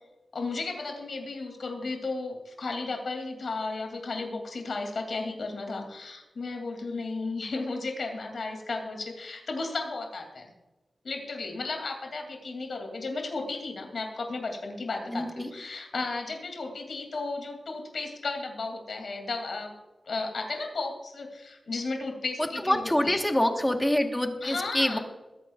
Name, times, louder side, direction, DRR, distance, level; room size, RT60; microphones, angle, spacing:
voice 1, 0.3-10.5 11.0-19.7 20.1-23.2 24.4-25.0, left 3 dB, 75° left, 3 dB, 2.6 m, -34 dB
voice 2, 15.1-15.5 22.6-25.0, left 1 dB, 10° left, 4 dB, 1.3 m, -26 dB
21.5 x 9.8 x 2.4 m, 1.1 s
wide cardioid pair, 130°, 0 cm